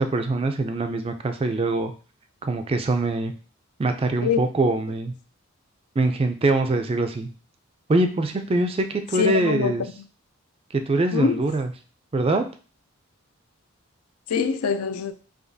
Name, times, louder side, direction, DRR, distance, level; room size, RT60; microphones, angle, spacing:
voice 1, 0.0-1.9 2.4-3.3 3.8-5.1 6.0-7.3 7.9-9.8 10.7-11.7 12.1-12.4, right 2 dB, 25° right, 0.3 m, -23 dB
voice 2, 9.1-10.1 11.1-11.4 14.3-15.1, left 6 dB, 85° left, 0.4 m, -24 dB
4.9 x 2.3 x 2.6 m
head